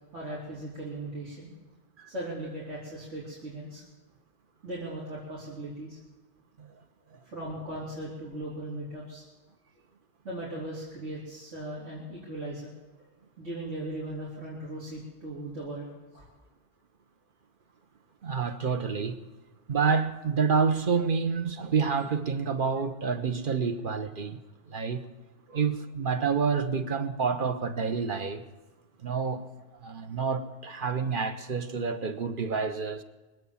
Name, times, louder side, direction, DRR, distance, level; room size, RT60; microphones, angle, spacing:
voice 1, 0.1-1.5 2.1-3.8 4.6-6.0 7.1-9.2 10.2-12.7 13.0-13.1 13.4-16.3 25.5-25.6, right 1 dB, 80° right, 3.9 m, -38 dB
voice 2, 18.2-19.2 19.7-24.4 24.7-25.0 25.5-28.5 29.0-29.5 29.8-33.0, right 5 dB, 50° right, 1.1 m, -28 dB
23.5 x 8.4 x 7.2 m
omnidirectional pair, 1.2 m